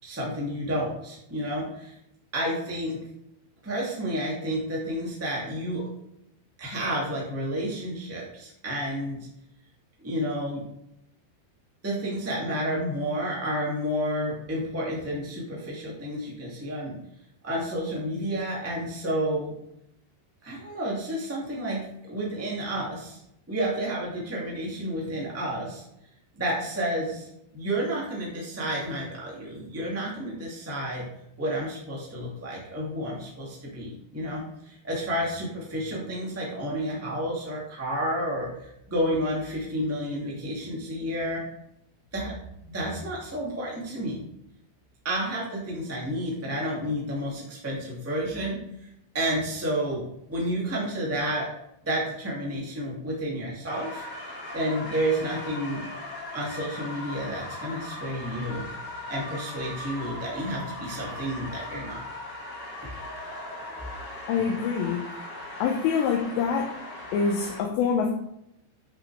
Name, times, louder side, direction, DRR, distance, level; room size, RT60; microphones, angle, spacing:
voice 1, 0.0-1.9 2.3-3.0 3.6-5.9 6.6-9.2 10.0-10.6 11.8-17.0 17.4-19.5 20.4-23.2 23.5-25.8 26.3-27.3 27.5-31.0 31.4-41.4 42.1-42.3 42.7-44.2 45.0-48.6 49.1-51.5 51.8-54.0 54.5-55.8 56.3-58.7 59.1-62.0, equal, 15° right, -4 dB, 0.6 m, -30 dB
sound 1, 53.7-67.6, left 1 dB, 30° left, 2.7 m, -39 dB
voice 2, 64.3-65.1 65.6-66.7 67.1-68.2, left 6 dB, 80° left, 2 dB, 2.8 m, -25 dB
10.0 x 6.2 x 3.4 m, 0.78 s
omnidirectional pair, 5.4 m